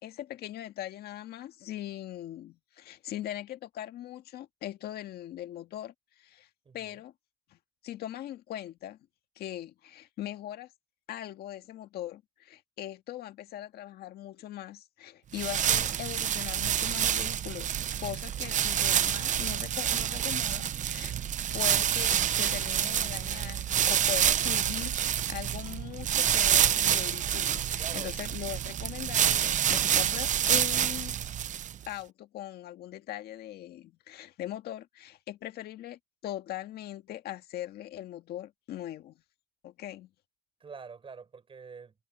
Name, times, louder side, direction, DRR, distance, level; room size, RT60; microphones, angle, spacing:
voice 1, 0.0-6.5 6.7-7.1 7.5-7.6 7.8-9.0 9.4-10.7 11.1-17.7 18.0-21.2 21.5-31.1 31.9-39.1 39.6-40.1, left 13 dB, 70° left, 1.8 m, -40 dB
voice 2, 6.7-7.0 22.7-23.9 27.8-28.1 40.6-41.9, right 5 dB, 30° right, 5.3 m, -48 dB
sound 1, 15.3-31.9, right 10 dB, 45° right, 0.8 m, -28 dB
cardioid pair, 110°, 17 cm